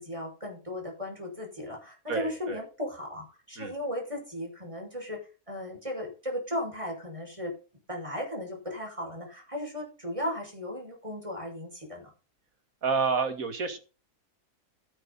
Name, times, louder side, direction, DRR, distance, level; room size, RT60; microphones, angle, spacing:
voice 1, 0.0-5.2 5.5-7.5 7.9-12.1, left 1 dB, 20° right, 1 dB, 6.2 m, -36 dB
voice 2, 2.1-2.6 3.6-3.7 12.8-13.8, right 4 dB, 65° right, 8 dB, 2.5 m, -29 dB
12.5 x 11.0 x 4.1 m, 0.34 s
omnidirectional pair, 1.6 m